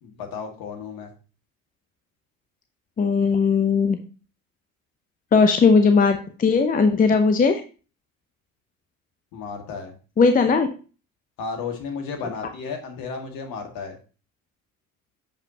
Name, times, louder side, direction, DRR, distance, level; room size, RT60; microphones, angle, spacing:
voice 1, 0.0-1.1 9.3-10.0 11.4-14.0, left 5 dB, 55° left, 4 dB, 1.9 m, -33 dB
voice 2, 3.0-4.0 5.3-7.6 10.2-10.7, left 5 dB, 20° left, 7 dB, 0.7 m, -18 dB
7.1 x 5.4 x 2.8 m, 0.35 s
hypercardioid pair, 65°, 41 cm